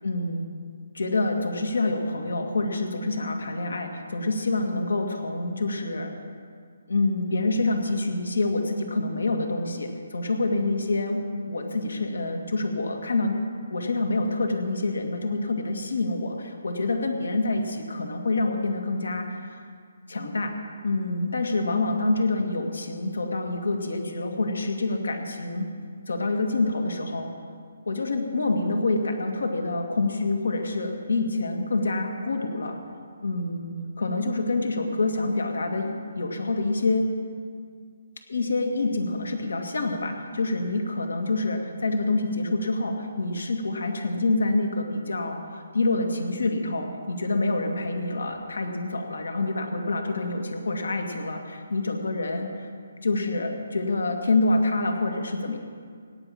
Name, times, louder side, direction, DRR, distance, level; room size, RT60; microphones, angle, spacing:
voice 1, 0.0-0.5 0.9-6.1 6.9-13.4 13.7-19.6 20.1-20.5 20.8-25.7 26.1-27.3 27.9-32.8 33.2-37.1 38.3-52.5 53.0-55.6, left 2 dB, 75° left, 3 dB, 2.0 m, -27 dB
17.0 x 6.1 x 8.7 m, 2.1 s
figure-of-eight pair, 145°, 0 cm